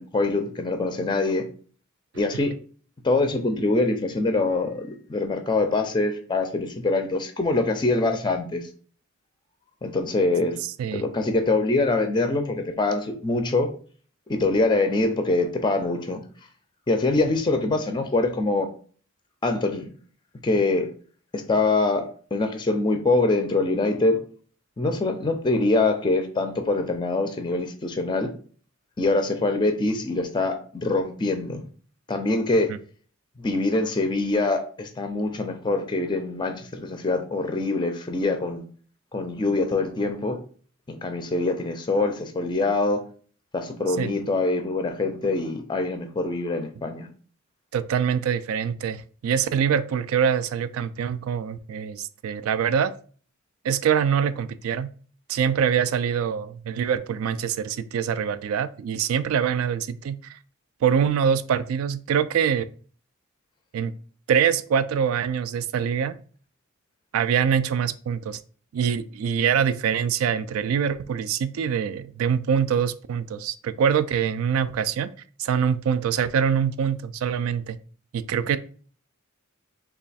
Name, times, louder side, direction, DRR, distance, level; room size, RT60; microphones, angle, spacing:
voice 1, 0.0-1.4 2.1-2.5 3.0-4.8 5.1-8.7 9.8-10.6 10.9-13.7 14.3-16.2 16.9-18.7 19.4-19.9 20.4-20.9 21.3-24.2 24.8-28.3 29.0-31.7 32.1-32.7 33.4-38.6 39.1-40.4 40.9-43.0 43.5-47.1, left 2 dB, 20° left, 7 dB, 0.4 m, -24 dB
voice 2, 47.7-52.9 53.6-54.9 55.3-60.4 60.8-62.7 63.7-63.9 64.3-66.2 67.1-68.4 68.7-75.1 75.4-77.8 78.1-78.6, right 7 dB, 80° right, 13 dB, 0.3 m, -24 dB
3.2 x 2.3 x 4.0 m, 0.43 s
head